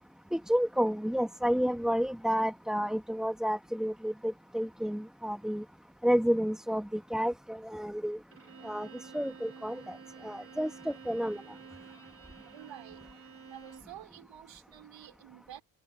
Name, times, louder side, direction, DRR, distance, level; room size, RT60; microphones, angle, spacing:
voice 1, 0.3-5.6 6.0-8.2 8.6-8.9 9.1-10.0 10.2-11.4, equal, ahead, 1.8 m, -30 dB
Bowed string instrument, 8.3-14.0, right 5 dB, 30° right, 3.3 m, -50 dB
voice 2, 12.5-13.1 13.5-15.6, right 12 dB, 65° right, 3.8 m, -49 dB
hypercardioid pair, 50°, 48 cm